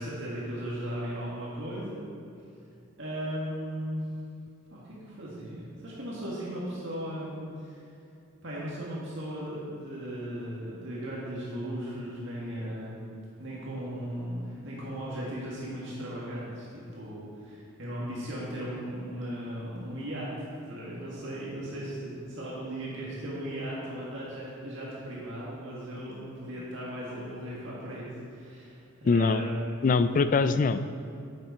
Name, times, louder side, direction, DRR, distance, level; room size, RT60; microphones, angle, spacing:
voice 1, 0.0-2.0 3.0-4.0 4.7-7.8 8.4-20.3 20.6-29.9, equal, 60° right, -6 dB, 1.9 m, -37 dB
voice 2, 29.1-29.4 29.8-30.9, left 4 dB, 40° left, 11 dB, 0.3 m, -23 dB
10.5 x 7.8 x 4.2 m, 2.5 s
head